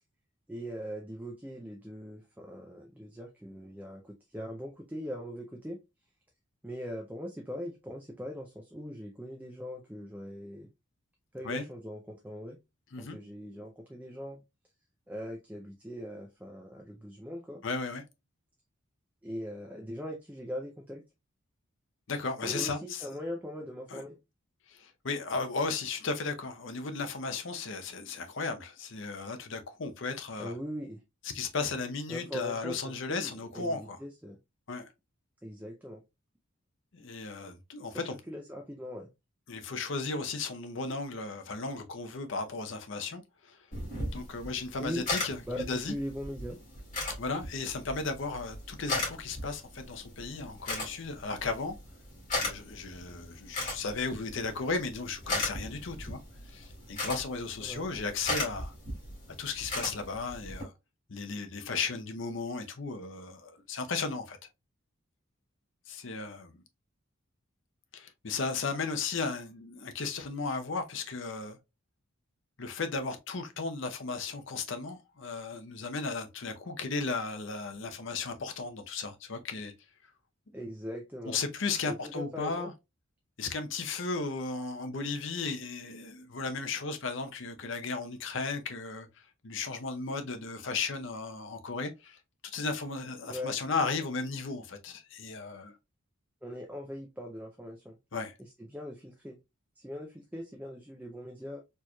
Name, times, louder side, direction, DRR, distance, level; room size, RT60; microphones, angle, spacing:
voice 1, 0.5-5.8 6.6-10.7 11.3-12.6 13.0-14.4 15.1-17.6 19.2-21.0 22.4-24.2 30.4-31.0 32.1-34.4 35.4-36.0 37.9-39.1 44.8-45.0 45.5-46.6 57.6-57.9 80.5-81.4 81.9-82.7 93.3-93.5 96.4-98.0 98.4-99.4 99.8-101.6, equal, 10° right, 0.4 m, -40 dB
voice 2, 17.6-18.0 22.1-23.2 23.9-24.0 24.7-30.5 31.2-34.0 34.7-34.9 36.9-38.2 39.5-43.6 44.1-45.9 47.2-51.8 52.3-56.2 56.5-58.7 59.4-60.7 61.1-64.4 65.9-66.6 67.9-71.6 72.6-79.7 81.3-82.7 83.4-92.2 92.5-95.7 98.1-98.3, left 4 dB, 60° left, 0.6 m, -35 dB
sound 1, 43.7-60.6, left 2 dB, 35° left, 2.3 m, -38 dB
4.4 x 3.0 x 2.2 m
head